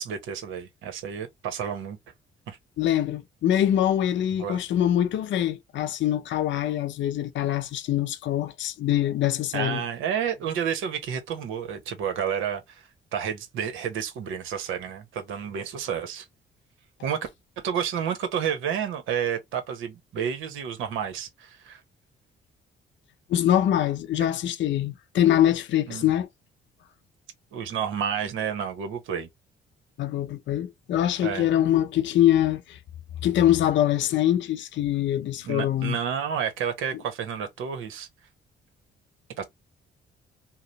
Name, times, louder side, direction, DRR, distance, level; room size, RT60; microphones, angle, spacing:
voice 1, 0.0-2.0 2.5-2.6 4.4-4.6 9.5-16.3 17.0-17.3 17.6-21.8 25.9-26.1 27.5-29.3 31.2-31.5 35.4-38.1 39.4-39.5, right 8 dB, 90° right, 0.9 m, -30 dB
voice 2, 2.8-9.8 23.3-26.3 30.0-32.8 33.2-36.0, left 11 dB, 70° left, 0.6 m, -24 dB
2.9 x 2.0 x 3.9 m
cardioid pair, 90°, 20 cm